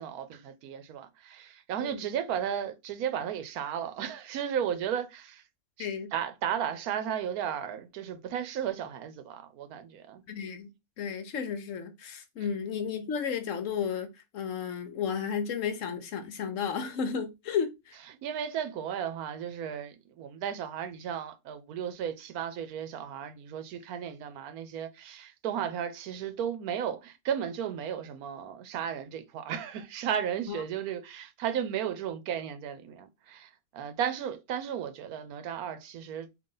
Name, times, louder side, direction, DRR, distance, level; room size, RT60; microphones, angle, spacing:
voice 1, 0.0-5.4 5.8-10.2 18.2-36.3, right 9 dB, 85° right, 1.1 m, -34 dB
voice 2, 5.8-6.1 10.3-10.7 11.0-17.9 30.5-30.6, left 7 dB, 65° left, 1.0 m, -33 dB
3.8 x 2.8 x 3.8 m
omnidirectional pair, 1.5 m